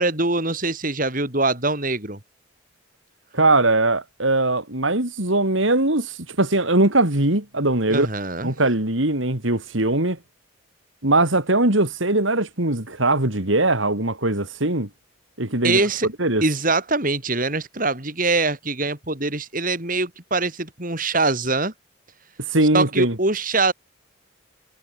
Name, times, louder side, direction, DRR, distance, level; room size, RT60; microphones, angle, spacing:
voice 1, 0.0-2.2 7.9-8.5 15.6-16.1 16.4-21.7 22.7-23.7, right 3 dB, 40° right, 4.4 m, -23 dB
voice 2, 3.3-8.1 8.4-10.2 11.0-14.9 15.4-15.8 16.2-16.4 22.5-23.2, right 2 dB, 70° right, 3.7 m, -20 dB
head